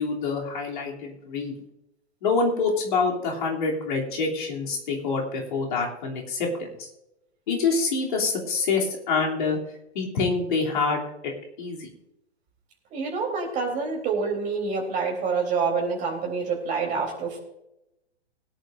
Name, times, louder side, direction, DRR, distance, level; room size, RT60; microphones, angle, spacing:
voice 1, 0.0-1.5 2.2-6.9 7.5-9.6 9.9-11.3 11.6-11.9, left 4 dB, 45° left, -1 dB, 3.2 m, -26 dB
voice 2, 12.9-17.4, right 5 dB, 20° right, 0 dB, 3.6 m, -27 dB
20.5 x 11.0 x 2.6 m, 0.86 s
figure-of-eight pair, 115°, 33 cm